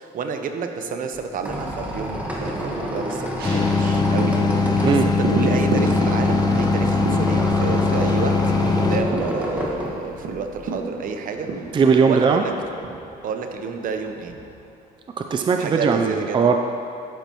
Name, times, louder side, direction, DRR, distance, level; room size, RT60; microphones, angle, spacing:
voice 1, 0.0-11.7 12.0-12.5 13.2-14.4 15.6-16.5, right 5 dB, 55° right, 6 dB, 0.8 m, -30 dB
Squeak, 1.1-10.7, equal, 10° right, 1.6 m, -29 dB
sound 1, 3.4-9.0, left 4 dB, 25° left, 0.6 m, -20 dB
sound 2, 3.4-15.1 15.4-15.5, right 3 dB, 70° right, 1.6 m, -33 dB
voice 2, 11.7-12.4 15.2-16.6, right 5 dB, 30° right, 5 dB, 0.4 m, -19 dB
12.0 x 9.0 x 3.0 m, 2.6 s
cardioid pair, 110°, 17 cm